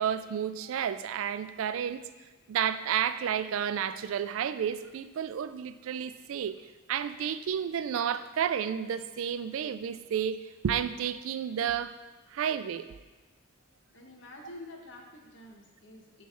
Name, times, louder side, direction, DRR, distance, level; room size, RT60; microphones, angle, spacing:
voice 1, 0.0-2.0 2.5-6.5 6.9-11.9 12.3-12.9, right 8 dB, 80° right, 13 dB, 0.3 m, -31 dB
voice 2, 13.9-16.3, left 1 dB, 60° left, 1 dB, 1.0 m, -48 dB
6.9 x 3.2 x 5.6 m, 1.2 s
head